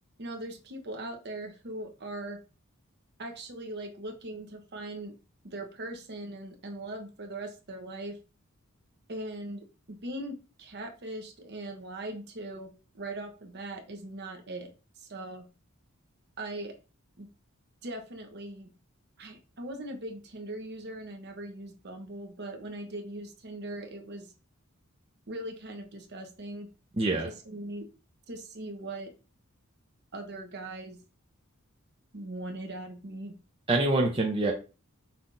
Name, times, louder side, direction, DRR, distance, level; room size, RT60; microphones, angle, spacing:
voice 1, 0.2-2.4 3.2-5.1 5.4-8.2 9.1-14.7 15.0-15.5 16.4-16.7 17.2-17.3 17.8-18.7 19.2-24.3 25.3-26.7 27.2-27.9 28.3-29.1 30.1-31.0 32.1-33.3, right 1 dB, 50° right, 4 dB, 0.9 m, -40 dB
voice 2, 27.0-27.3 33.7-34.5, right 2 dB, 25° right, -1 dB, 0.7 m, -25 dB
5.7 x 3.3 x 2.7 m, 0.33 s
head